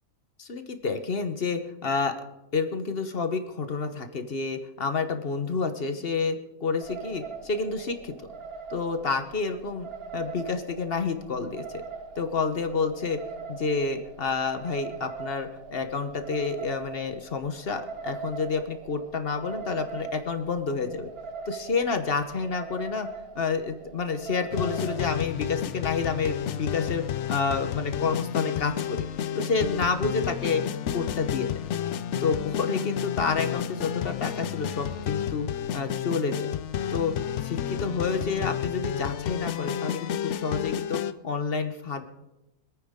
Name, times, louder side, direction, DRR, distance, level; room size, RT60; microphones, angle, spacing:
voice 1, 0.4-2.1 2.5-8.1 8.7-9.9 10.1-11.8 12.2-13.2 13.5-21.1 21.5-23.1 23.3-29.1 29.3-30.6 30.9-31.5 32.2-35.5 35.7-36.5 36.9-37.1 37.4-41.0 41.2-42.0, left 4 dB, 45° left, 8 dB, 1.1 m, -29 dB
sound 1, 6.8-25.0, right 5 dB, 50° right, 0.9 m, -41 dB
sound 2, 24.5-41.1, left 10 dB, 65° left, 0.8 m, -31 dB
25.5 x 9.2 x 3.6 m, 0.98 s
omnidirectional pair, 1.5 m